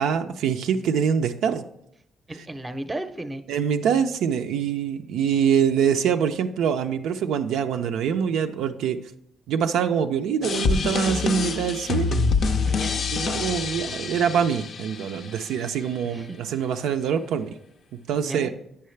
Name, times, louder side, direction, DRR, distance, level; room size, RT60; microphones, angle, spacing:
voice 1, 0.0-1.6 3.5-9.0 9.5-12.1 13.1-17.5 18.1-18.5, right 7 dB, 85° right, 6 dB, 0.4 m, -24 dB
voice 2, 2.3-3.4 12.7-13.0 16.0-16.4 18.2-18.5, right 1 dB, 20° right, 9 dB, 0.6 m, -34 dB
sound 1, 10.4-15.4, left 4 dB, 60° left, 0.5 m, -26 dB
8.5 x 5.6 x 3.2 m, 0.77 s
cardioid pair, 90°, 0 cm